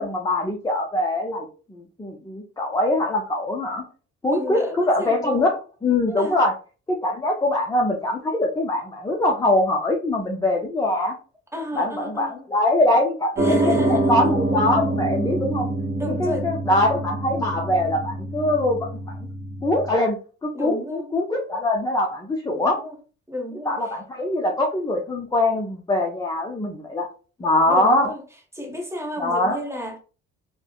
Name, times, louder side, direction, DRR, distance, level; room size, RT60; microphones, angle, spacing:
voice 1, 0.0-3.8 4.2-5.5 5.8-6.5 6.9-11.2 11.8-15.7 16.2-19.1 19.6-22.8 23.7-27.1 27.4-28.1 29.2-29.6, left 1 dB, 10° left, 0.5 m, -23 dB
voice 2, 4.2-5.5 6.1-6.4 11.5-12.4 13.4-14.3 16.0-16.5 20.5-21.1 22.5-22.9 23.3-24.0 27.7-28.2 28.5-30.0, left 1 dB, 10° right, 1.0 m, -32 dB
Piano, 13.4-19.9, right 2 dB, 30° right, 1.0 m, -26 dB
3.3 x 2.1 x 2.2 m
supercardioid pair, 75°, 32 cm